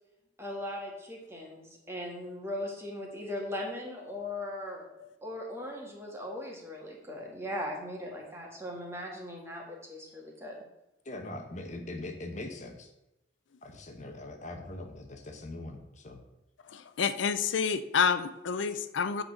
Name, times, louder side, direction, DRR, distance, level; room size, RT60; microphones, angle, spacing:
voice 1, 0.4-4.8 5.2-10.6, left 1 dB, 15° right, -1 dB, 1.7 m, -39 dB
voice 2, 11.0-12.9 13.6-16.2, left 2 dB, 40° left, 4 dB, 0.9 m, -41 dB
voice 3, 16.7-19.2, left 6 dB, 85° left, 12 dB, 0.5 m, -29 dB
8.7 x 4.0 x 6.5 m, 0.90 s
head